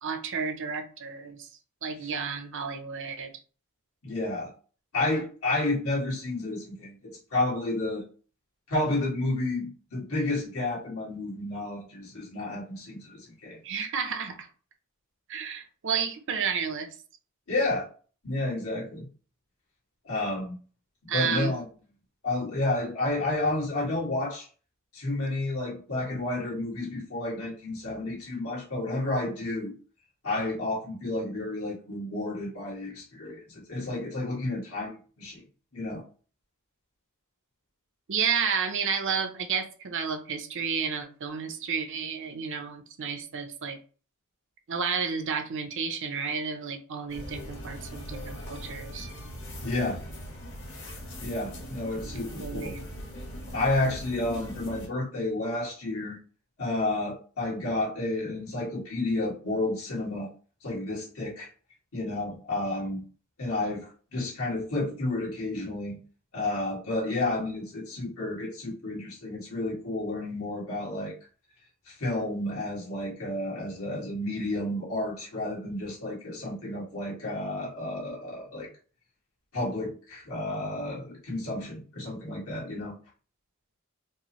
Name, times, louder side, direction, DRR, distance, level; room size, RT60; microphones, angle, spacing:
voice 1, 0.0-1.5 1.8-3.3 13.6-14.5 15.3-16.9 21.1-21.6 38.1-43.8 44.7-49.3 52.4-52.8, right 6 dB, 60° right, 7 dB, 0.6 m, -31 dB
voice 2, 4.0-4.5 4.9-8.0 8.7-13.6 17.5-17.9 18.2-19.1 20.0-20.6 21.1-21.6 22.2-24.5 24.9-29.7 30.2-35.4 35.7-36.0 49.6-50.0 51.2-52.7 53.5-56.2 56.6-60.3 60.6-61.5 61.9-63.0 63.4-66.0 66.3-71.1 71.9-78.7 79.5-82.9, left 2 dB, 85° left, -6 dB, 1.9 m, -31 dB
sound 1, 47.1-54.9, equal, 60° left, 1.3 m, -40 dB
4.4 x 2.0 x 3.0 m, 0.39 s
head